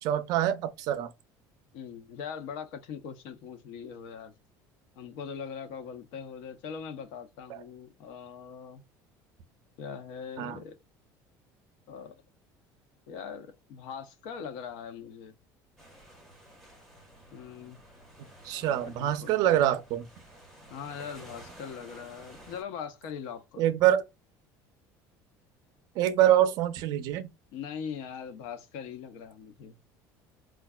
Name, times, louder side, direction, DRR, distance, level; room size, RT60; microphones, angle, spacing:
voice 1, 0.0-1.1 7.5-7.6 10.4-10.6 18.4-20.1 23.6-24.0 26.0-27.3, right 12 dB, 50° right, 0.5 m, -25 dB
voice 2, 1.7-4.3 5.0-8.8 9.8-10.7 11.9-12.1 13.1-15.3 17.3-17.8 18.7-19.8 20.7-23.7 27.5-29.8, left 7 dB, 70° left, 0.7 m, -41 dB
sound 1, 15.8-22.6, right 1 dB, ahead, 1.0 m, -52 dB
4.5 x 2.4 x 2.3 m
cardioid pair, 175°, 8 cm